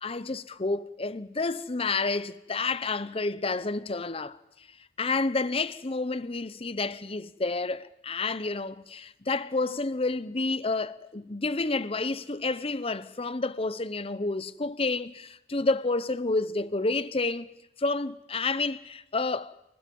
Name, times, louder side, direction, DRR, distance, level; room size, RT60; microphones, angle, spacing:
voice 1, 0.0-4.7 5.0-17.5 17.8-19.5, left 3 dB, 30° left, 0.8 m, -30 dB
28.0 x 28.0 x 5.5 m
head